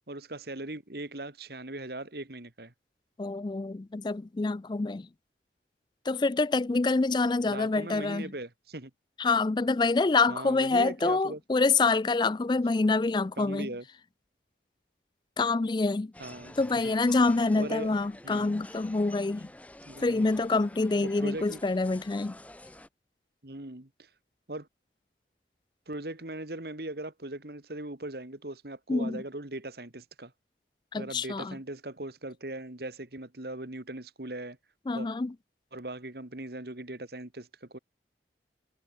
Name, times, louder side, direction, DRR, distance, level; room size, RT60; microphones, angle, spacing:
voice 1, 0.1-2.7 7.5-8.9 10.3-11.4 13.4-13.8 16.2-16.6 16.8-16.9 17.5-17.9 18.2-18.6 19.8-20.3 21.0-21.6 23.4-24.1 24.5-24.7 25.9-30.3 31.0-34.6 34.9-35.1 35.7-37.8, right 1 dB, 60° right, 2.0 m, -39 dB
voice 2, 3.2-5.1 6.1-8.3 9.2-13.7 15.4-16.1 16.6-19.5 20.0-22.4 28.9-29.2 30.9-31.6 34.9-35.3, left 3 dB, 25° left, 0.3 m, -26 dB
sound 1, 16.1-22.9, left 1 dB, 10° left, 1.0 m, -49 dB
head